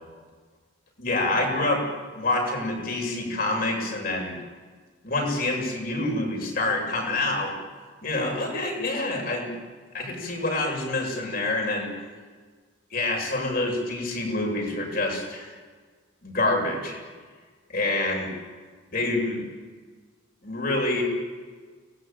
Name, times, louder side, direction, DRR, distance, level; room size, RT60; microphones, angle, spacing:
voice 1, 1.0-1.9 2.1-4.4 5.0-7.6 8.0-9.5 9.9-11.9 12.9-15.5 16.2-17.0 17.7-18.3 18.9-19.4 20.4-21.0, left 2 dB, 50° left, 1 dB, 7.8 m, -27 dB
29.5 x 20.0 x 9.3 m, 1.5 s
head